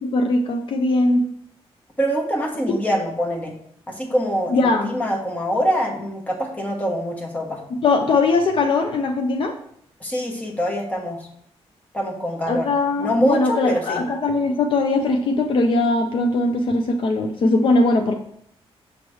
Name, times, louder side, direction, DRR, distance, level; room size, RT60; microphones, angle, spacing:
voice 1, 0.0-1.2 4.5-4.9 7.8-9.5 12.5-18.2, left 2 dB, 55° left, 4 dB, 0.5 m, -20 dB
voice 2, 2.0-3.5 3.9-7.6 10.0-11.2 11.9-12.7 13.0-14.0, equal, 15° left, 0 dB, 1.1 m, -24 dB
6.5 x 3.1 x 4.8 m, 0.68 s
wide cardioid pair, 145°, 11 cm